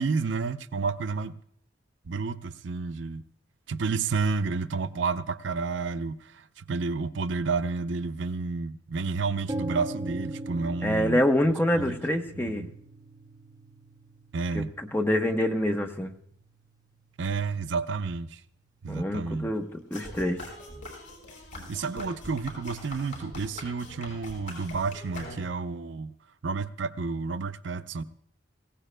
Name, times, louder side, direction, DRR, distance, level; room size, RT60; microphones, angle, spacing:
voice 1, 0.0-1.3 2.1-3.2 3.7-12.0 12.3-12.7 14.3-14.7 17.2-18.4 18.8-19.5 21.7-26.1 26.4-28.0, right 4 dB, 75° right, 0.5 m, -30 dB
sound 1, 9.5-17.4, right 1 dB, 20° right, 0.7 m, -41 dB
voice 2, 10.8-12.7 14.5-16.1 18.9-20.4, left 1 dB, 10° left, 0.9 m, -26 dB
sound 2, 19.9-25.7, left 1 dB, 85° left, 5.4 m, -43 dB
23.5 x 16.5 x 2.2 m
head